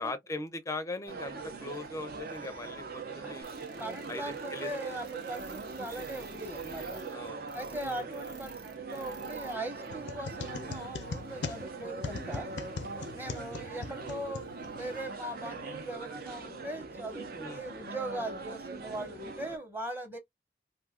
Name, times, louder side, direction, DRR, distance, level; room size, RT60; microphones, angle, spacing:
voice 1, 0.0-3.5 4.1-5.0 7.1-7.5 7.9-8.0 12.9-13.3 17.4-17.6, left 2 dB, 15° left, 0.5 m, -40 dB
sound 1, 1.1-19.6, right 4 dB, 55° right, 0.7 m, -41 dB
sound 2, 3.4-9.6 9.8-9.9 10.4-10.5, right 4 dB, 75° right, 1.1 m, -52 dB
voice 2, 3.8-7.2 7.5-12.5 13.1-20.2, right 1 dB, 10° right, 0.9 m, -40 dB
sound 3, 9.9-15.0, left 4 dB, 70° left, 0.5 m, -41 dB
2.7 x 2.3 x 3.5 m
head